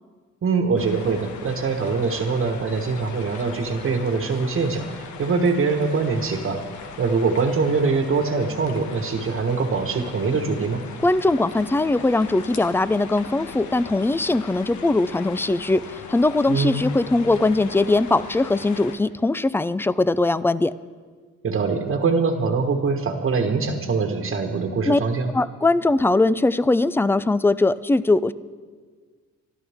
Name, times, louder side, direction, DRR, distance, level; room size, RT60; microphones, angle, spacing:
voice 1, 0.4-10.8 16.5-16.8 21.4-25.3, right 4 dB, 45° right, 3 dB, 1.4 m, -23 dB
sound 1, 0.8-19.0, left 6 dB, 75° left, 1.2 m, -39 dB
voice 2, 11.0-20.7 24.9-25.0 25.3-28.3, left 2 dB, 10° left, 17 dB, 0.4 m, -20 dB
26.0 x 12.0 x 3.6 m, 1.5 s
cardioid pair, 90°, 30 cm